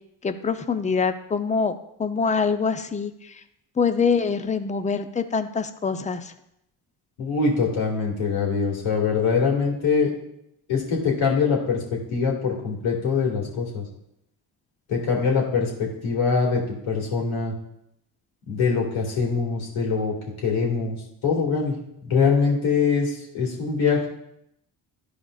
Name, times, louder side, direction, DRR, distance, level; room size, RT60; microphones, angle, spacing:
voice 1, 0.2-3.3 3.8-6.3, left 5 dB, 15° left, 9 dB, 0.6 m, -25 dB
voice 2, 7.2-10.1 10.7-11.8 12.1-13.8 14.9-17.5 18.5-20.1 20.4-21.0 21.2-21.7 22.1-24.1, left 5 dB, 70° left, -2 dB, 2.2 m, -23 dB
12.5 x 5.0 x 2.4 m, 0.79 s
supercardioid pair, 55°, 49 cm